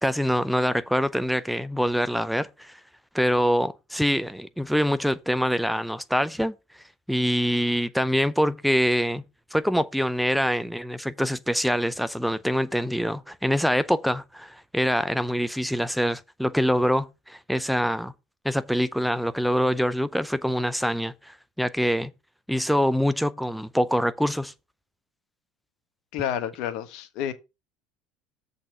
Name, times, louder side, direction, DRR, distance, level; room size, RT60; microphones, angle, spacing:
voice 1, 0.0-2.8 3.1-6.5 7.1-9.2 9.5-18.1 18.4-22.1 22.5-24.5, equal, ahead, 0.5 m, -25 dB
voice 2, 26.1-27.3, left 10 dB, 65° left, 1.3 m, -30 dB
7.5 x 4.2 x 6.8 m
supercardioid pair, 110°, 0 cm